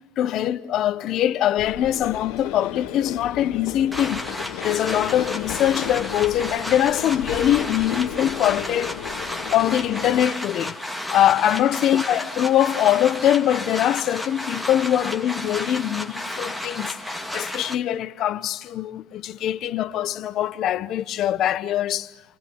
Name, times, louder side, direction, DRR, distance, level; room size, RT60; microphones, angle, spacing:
voice 1, 0.2-4.2 4.6-9.0 9.5-10.8 11.1-22.1, left 11 dB, 45° left, 1.1 m, -22 dB
sound 1, 1.6-10.3, left 13 dB, 75° left, 1.6 m, -34 dB
sound 2, 3.9-17.8, left 1 dB, ahead, 1.9 m, -32 dB
28.0 x 28.0 x 7.2 m
supercardioid pair, 135°, 0 cm